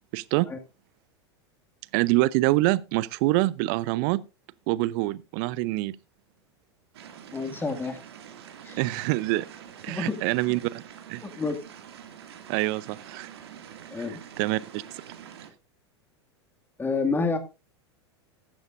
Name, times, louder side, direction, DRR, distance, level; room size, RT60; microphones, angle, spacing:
voice 1, 0.1-0.5 1.9-4.2 4.7-6.0 8.8-9.5 9.8-10.8 11.1-11.2 12.5-13.3 14.4-14.8, right 19 dB, 50° right, 0.6 m, -25 dB
sound 1, 6.9-15.5, right 8 dB, 65° right, 2.2 m, -46 dB
voice 2, 7.3-8.0 8.6-8.8 9.9-10.2 11.2-11.6 13.9-14.2 16.8-17.4, left 4 dB, 15° left, 2.1 m, -28 dB
14.5 x 11.5 x 2.5 m
figure-of-eight pair, 85°, 14 cm